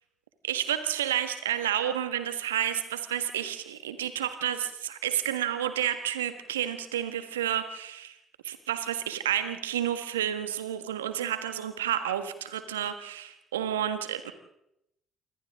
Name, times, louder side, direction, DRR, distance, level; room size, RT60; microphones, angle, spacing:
voice 1, 0.5-8.2 8.4-14.3, right 10 dB, 80° right, 10 dB, 1.6 m, -30 dB
28.0 x 25.5 x 3.7 m, 0.80 s
figure-of-eight pair, 50°, 0 cm